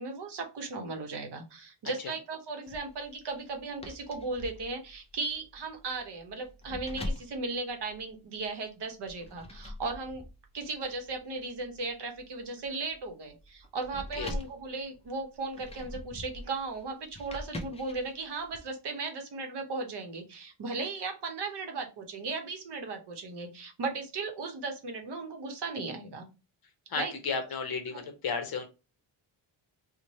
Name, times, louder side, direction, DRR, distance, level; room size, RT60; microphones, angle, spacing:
voice 1, 0.0-10.2 10.5-26.3 27.0-27.1 27.9-28.0, right 3 dB, 55° right, 4 dB, 0.8 m, -36 dB
sound 1, 2.7-8.5 9.1-18.6, left 1 dB, 15° left, 0.3 m, -44 dB
voice 2, 26.9-28.7, left 5 dB, 50° left, 6 dB, 0.7 m, -33 dB
3.1 x 2.1 x 4.0 m, 0.29 s
wide cardioid pair, 170°, 49 cm